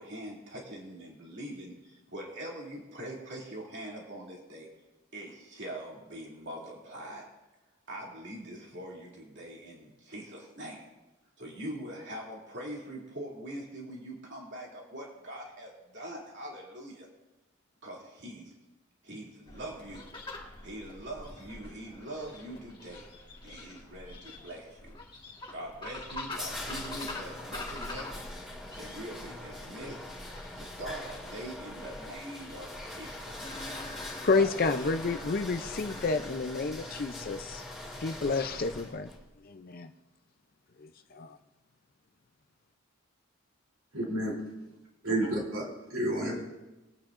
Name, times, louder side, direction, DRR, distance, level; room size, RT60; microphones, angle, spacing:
voice 1, 0.0-4.7 5.1-7.3 7.9-10.8 11.4-17.1 17.8-18.5 19.0-20.1 20.6-23.1 23.4-24.9 25.5-28.2 28.8-30.1 30.6-33.5 34.3-34.9, right 1 dB, 55° right, -3 dB, 2.6 m, -43 dB
sound 1, 19.5-39.0, left 2 dB, 25° left, 1.6 m, -46 dB
sound 2, 25.8-39.2, left 1 dB, 5° right, 2.4 m, -43 dB
voice 2, 34.2-37.6 38.0-39.1 39.4-39.9 40.8-41.4, left 4 dB, 45° left, 7 dB, 0.5 m, -30 dB
voice 3, 43.9-44.3 45.0-45.6 45.9-46.4, right 1 dB, 75° right, -1 dB, 3.2 m, -30 dB
21.5 x 8.9 x 2.5 m, 1.0 s
head